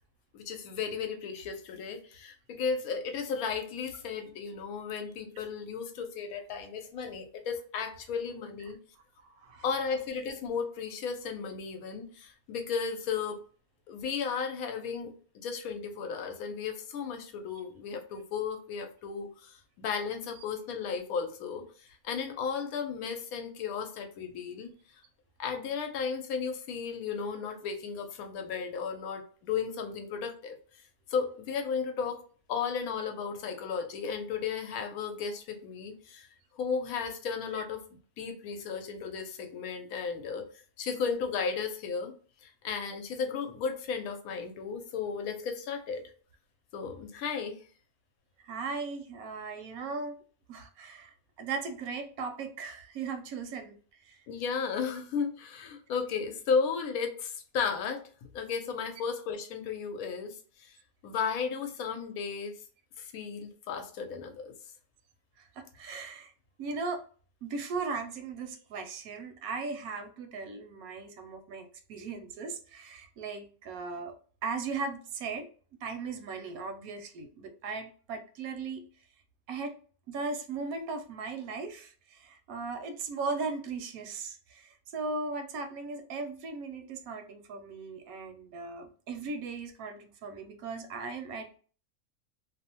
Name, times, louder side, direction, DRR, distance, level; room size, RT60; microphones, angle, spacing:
voice 1, 0.3-8.8 9.6-13.4 13.9-24.7 25.4-30.6 31.1-36.3 36.5-37.8 38.2-40.4 40.8-42.1 42.4-46.1 46.7-47.6 54.3-58.1 58.3-60.8 61.0-62.5 63.0-64.5, left 6 dB, 80° left, 5 dB, 1.0 m, -34 dB
voice 2, 48.4-50.2 50.5-53.7 54.1-54.2 65.6-66.3 66.6-67.0 67.4-74.1 74.4-75.5 75.8-78.8 79.5-79.7 80.1-91.6, right 4 dB, 80° right, 6 dB, 1.1 m, -37 dB
2.7 x 2.1 x 2.8 m, 0.41 s
omnidirectional pair, 1.5 m